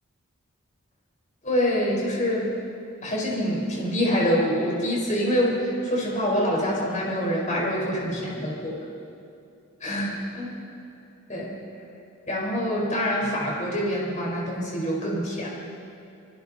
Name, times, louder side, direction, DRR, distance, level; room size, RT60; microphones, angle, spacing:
voice 1, 1.4-2.5 3.0-8.8 9.8-10.5 11.3-11.5 12.3-15.5, equal, 35° left, -3 dB, 4.9 m, -25 dB
26.5 x 26.5 x 4.3 m, 2.6 s
head